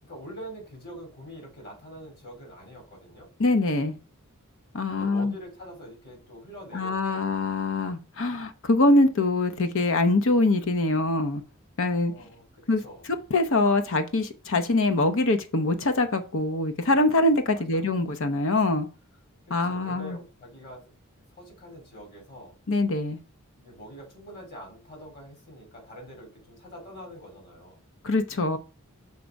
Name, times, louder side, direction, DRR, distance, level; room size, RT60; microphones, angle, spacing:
voice 1, 0.0-3.3 4.9-7.3 12.0-13.1 17.5-17.9 19.5-20.8 21.3-22.6 23.6-27.8, equal, 50° left, 3.3 m, -44 dB
voice 2, 3.4-4.0 4.7-5.3 6.7-11.4 11.8-12.1 12.7-12.8 13.3-18.9 19.5-20.2 22.7-23.2 28.0-28.6, left 2 dB, 65° left, 0.7 m, -23 dB
6.7 x 3.5 x 5.1 m
head